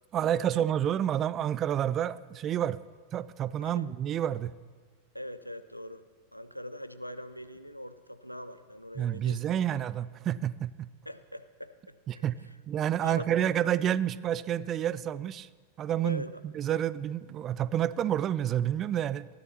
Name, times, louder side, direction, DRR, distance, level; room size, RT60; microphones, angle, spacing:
voice 1, 0.1-2.8 3.1-4.5 9.0-10.9 12.1-12.4 12.7-15.5 15.8-16.2 16.5-19.3, right 10 dB, 30° right, 19 dB, 0.3 m, -29 dB
voice 2, 5.1-9.6 11.1-12.2 13.0-13.5 16.0-16.4, left 1 dB, 90° left, 13 dB, 0.5 m, -42 dB
20.0 x 14.0 x 2.8 m, 1.5 s
figure-of-eight pair, 90°, 0 cm